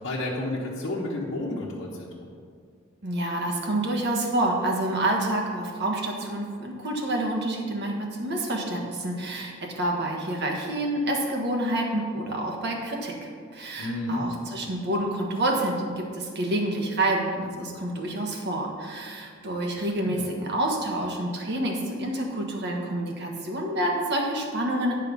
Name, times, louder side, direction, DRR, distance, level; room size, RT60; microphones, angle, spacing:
voice 1, 0.0-2.4 13.8-14.2 20.0-20.2, left 2 dB, 60° left, -5 dB, 1.2 m, -31 dB
voice 2, 3.0-25.0, right 1 dB, 55° right, 0 dB, 1.4 m, -28 dB
9.5 x 5.6 x 5.4 m, 2.1 s
head